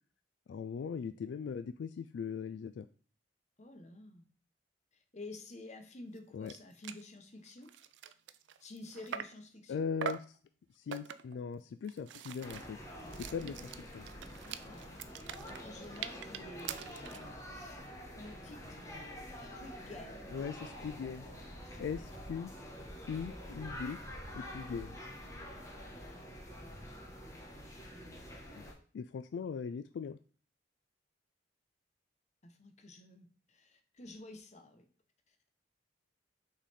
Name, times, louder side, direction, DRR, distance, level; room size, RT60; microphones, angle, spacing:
voice 1, 0.5-2.9 6.3-6.5 9.7-10.4 10.8-12.8 13.1-13.6 13.9-14.1 20.3-21.3 21.8-22.5 23.1-24.0 24.4-25.0 28.5-28.6 28.9-30.2, left 6 dB, 75° left, 11 dB, 0.3 m, -39 dB
voice 2, 3.6-4.3 5.1-7.7 8.6-9.8 14.4-15.1 15.4-17.8 18.1-19.2 19.5-20.3 21.6-22.1 32.4-34.9 35.3-35.4, left 2 dB, 40° left, 6 dB, 0.9 m, -51 dB
sound 1, 6.2-6.3 6.5-6.6 6.8-7.1 7.5-9.5 10.0-10.4 10.9-11.4 11.8-17.3, right 7 dB, 80° right, 0.4 m, -43 dB
sound 2, 12.4-28.7, equal, 15° left, 1.2 m, -47 dB
5.9 x 4.0 x 4.2 m, 0.41 s
head